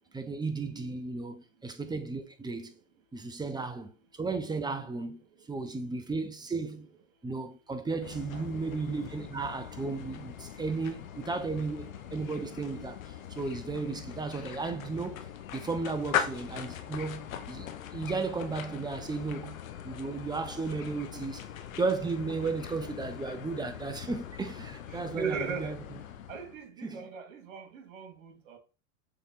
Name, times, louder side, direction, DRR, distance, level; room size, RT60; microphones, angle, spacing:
voice 1, 0.1-2.7 3.1-6.9 7.2-19.6 19.8-21.4 21.8-25.8 26.8-27.0, right 4 dB, 10° right, 0.9 m, -34 dB
sound 1, 8.0-26.6, left 9 dB, 85° left, 1.0 m, -41 dB
voice 2, 24.9-25.8 26.3-28.6, right 5 dB, 70° right, 2.5 m, -38 dB
6.9 x 3.6 x 3.9 m
hypercardioid pair, 105°, 39 cm